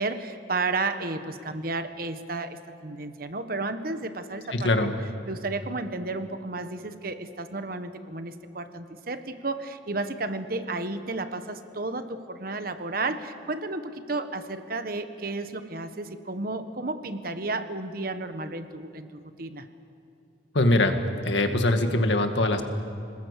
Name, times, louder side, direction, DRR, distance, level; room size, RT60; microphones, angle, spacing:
voice 1, 0.0-4.7 5.3-19.7, right 3 dB, 55° right, 9 dB, 1.3 m, -32 dB
voice 2, 4.5-5.0 20.5-21.0 21.2-22.6, left 1 dB, 85° left, 6 dB, 1.9 m, -22 dB
27.5 x 20.0 x 8.2 m, 2.7 s
head